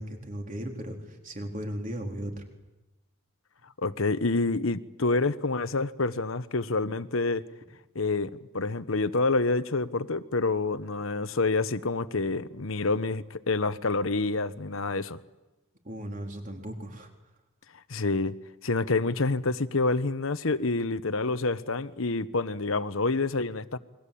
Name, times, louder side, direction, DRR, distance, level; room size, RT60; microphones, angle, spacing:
voice 1, 0.0-2.4 15.8-17.1, equal, 40° right, 3 dB, 4.1 m, -36 dB
voice 2, 3.8-7.4 7.9-15.2 17.9-18.3 18.6-23.8, left 3 dB, 75° left, 12 dB, 1.1 m, -27 dB
29.0 x 22.5 x 8.6 m, 1.1 s
head